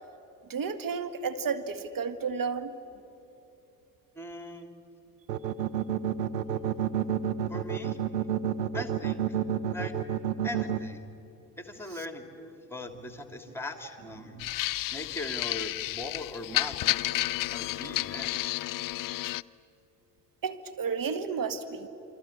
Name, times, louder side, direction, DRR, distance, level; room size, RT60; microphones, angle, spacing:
voice 1, 0.5-2.7 12.0-12.1 14.4-14.5 20.4-21.9, right 5 dB, 40° right, 11 dB, 1.8 m, -32 dB
voice 2, 4.1-4.7 7.5-8.1 8.7-9.4 9.7-10.0 10.4-11.0 11.6-14.4 14.9-17.0 17.5-18.6, left 1 dB, 5° left, 6 dB, 3.1 m, -40 dB
sound 1, 5.3-10.8, right 10 dB, 85° right, 0.8 m, -29 dB
sound 2, 14.4-19.4, left 16 dB, 45° left, 0.6 m, -31 dB
28.0 x 23.0 x 8.7 m, 2.9 s
figure-of-eight pair, 50°, 49 cm